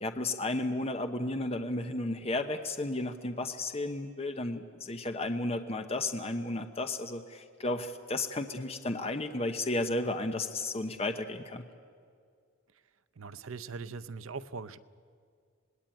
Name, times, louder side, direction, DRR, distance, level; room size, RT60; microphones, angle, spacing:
voice 1, 0.0-11.6, left 2 dB, 30° left, 6 dB, 0.9 m, -33 dB
voice 2, 13.2-14.8, right 4 dB, 90° right, 14 dB, 0.7 m, -41 dB
26.0 x 19.5 x 9.1 m, 2.2 s
head